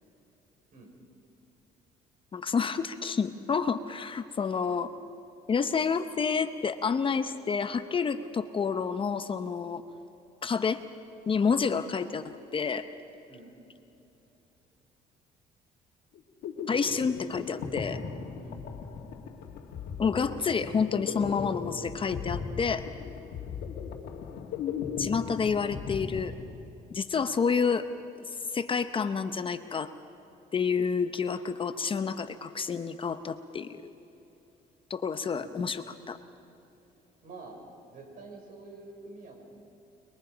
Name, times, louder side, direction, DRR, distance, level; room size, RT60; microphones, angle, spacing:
voice 1, 2.3-4.9 5.5-9.8 10.4-10.8 11.3-12.2 12.5-12.9 16.7-18.0 20.0-22.8 25.0-26.3 26.9-27.8 28.3-29.9 30.5-33.9 34.9-36.2, left 5 dB, 30° left, 10 dB, 0.8 m, -29 dB
sound 1, 16.1-26.9, left 6 dB, 75° left, 2.1 m, -37 dB
voice 2, 18.3-18.6 35.3-35.6 37.2-37.6 37.9-39.4, right 3 dB, 55° right, 1 dB, 5.7 m, -47 dB
30.0 x 22.0 x 5.1 m, 2.9 s
cardioid pair, 110°, 17 cm